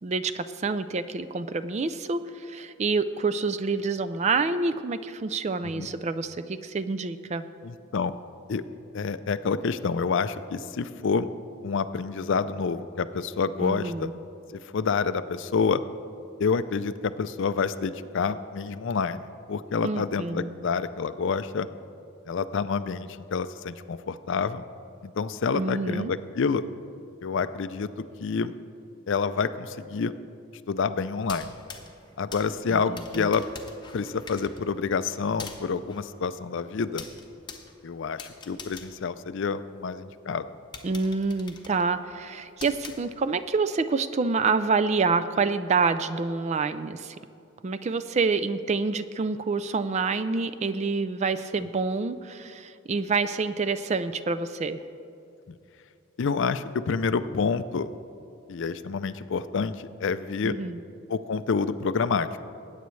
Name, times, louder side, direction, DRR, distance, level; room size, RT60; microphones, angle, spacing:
voice 1, 0.0-7.5 13.6-14.1 19.8-20.5 25.5-26.1 32.7-33.3 40.8-47.2 47.6-54.8 60.4-60.8, right 4 dB, 30° right, 11 dB, 0.3 m, -27 dB
voice 2, 7.6-8.2 8.5-8.6 8.9-11.3 11.6-14.1 14.7-15.8 16.4-21.7 22.3-24.6 25.0-26.6 27.2-27.9 28.2-28.5 29.1-30.1 30.7-31.5 32.2-33.4 33.9-37.0 37.8-40.5 55.5-55.6 56.2-57.9 58.5-60.5 61.1-62.4, left 5 dB, 55° left, 13 dB, 0.4 m, -28 dB
sound 1, 31.2-39.9 40.3-40.4 40.7-43.5, left 5 dB, 20° left, 0.8 m, -45 dB
20.0 x 9.2 x 3.2 m, 2.6 s
head